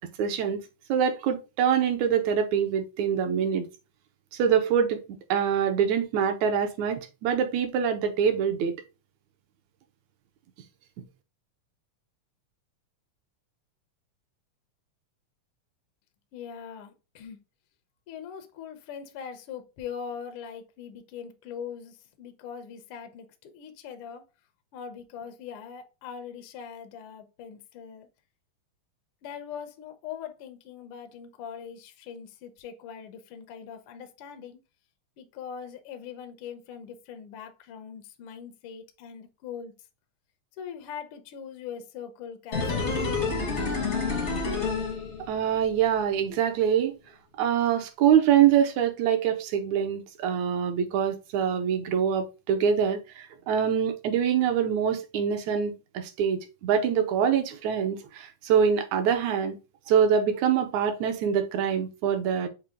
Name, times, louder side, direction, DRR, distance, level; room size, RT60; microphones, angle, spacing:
voice 1, 0.2-0.6 0.9-3.7 4.3-5.0 5.3-8.8 45.3-47.0 47.4-59.6 59.9-62.5, right 8 dB, 75° right, 2.0 m, -24 dB
voice 2, 16.3-17.4 18.1-24.2 24.7-28.1 29.2-34.6 35.2-39.7 40.6-43.1, left 7 dB, 85° left, 1.2 m, -41 dB
sound 1, 42.5-45.6 45.9-46.0, left 4 dB, 60° left, 0.7 m, -28 dB
6.6 x 2.2 x 3.5 m
omnidirectional pair, 3.5 m